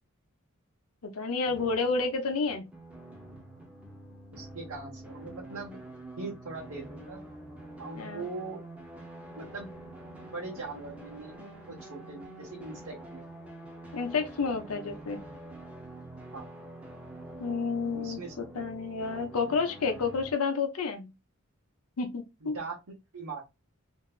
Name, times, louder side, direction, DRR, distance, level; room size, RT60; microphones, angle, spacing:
voice 1, 1.0-2.7 8.0-8.3 13.9-15.2 17.4-21.1 22.0-22.6, left 4 dB, 80° left, 0.6 m, -30 dB
sound 1, 1.5-20.3, right 1 dB, 5° right, 0.7 m, -46 dB
voice 2, 4.3-5.8 6.2-7.2 7.8-8.6 9.3-9.7 10.2-13.2 16.3-16.5 17.9-18.3 22.4-22.8 23.1-23.6, right 3 dB, 70° right, 0.8 m, -41 dB
3.1 x 2.6 x 2.3 m
head